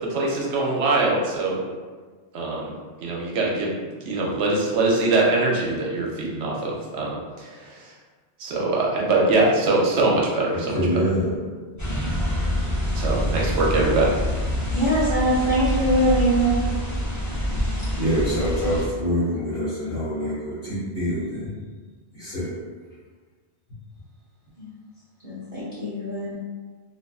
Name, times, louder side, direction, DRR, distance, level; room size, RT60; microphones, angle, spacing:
voice 1, 0.0-1.6 2.3-2.7 3.0-7.8 8.4-11.1 12.9-14.2, right 2 dB, 80° right, -2 dB, 0.9 m, -23 dB
voice 2, 10.5-11.4 18.0-21.5 22.1-22.5, equal, 55° left, -11 dB, 0.9 m, -25 dB
sound 1, 11.8-18.8, left 1 dB, 25° left, 0.4 m, -26 dB
voice 3, 14.7-16.6 24.6-24.7 25.2-26.4, right 1 dB, 45° right, -11 dB, 0.6 m, -22 dB
2.4 x 2.3 x 2.3 m, 1.4 s
omnidirectional pair, 1.2 m